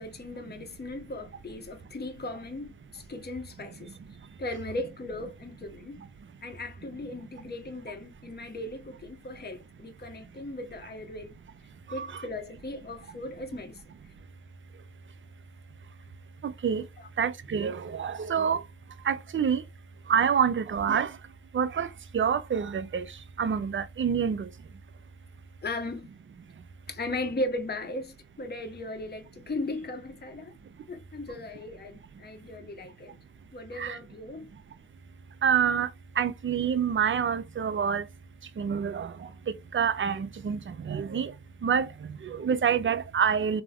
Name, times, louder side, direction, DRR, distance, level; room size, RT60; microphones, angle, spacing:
voice 1, 0.0-4.0 4.4-6.0 6.4-11.3 11.9-13.8 17.0-17.1 25.6-26.1 26.9-30.6 30.9-33.2 33.5-34.5, left 2 dB, 20° left, 0.8 m, -37 dB
voice 2, 17.2-18.6 19.0-19.6 20.1-21.1 21.5-21.9 22.1-23.1 23.4-24.5 33.8-34.0 35.4-35.9 36.2-38.1 38.6-41.3 41.6-43.6, right 7 dB, 25° right, 0.4 m, -27 dB
3.3 x 2.0 x 2.2 m
supercardioid pair, 45°, 48 cm